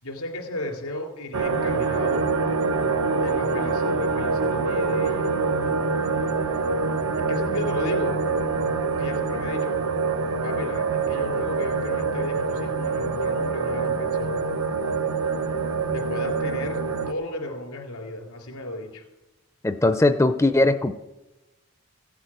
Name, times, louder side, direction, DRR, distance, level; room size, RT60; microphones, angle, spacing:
voice 1, 0.0-2.3 3.2-5.5 7.2-8.2 8.8-9.8 10.4-14.4 15.9-19.0, left 1 dB, 90° left, 2 dB, 3.7 m, -34 dB
sound 1, 1.3-17.1, right 4 dB, 90° right, 0.8 m, -25 dB
voice 2, 19.6-20.9, left 2 dB, 15° left, 10 dB, 0.4 m, -19 dB
15.5 x 8.3 x 7.9 m, 1.0 s
head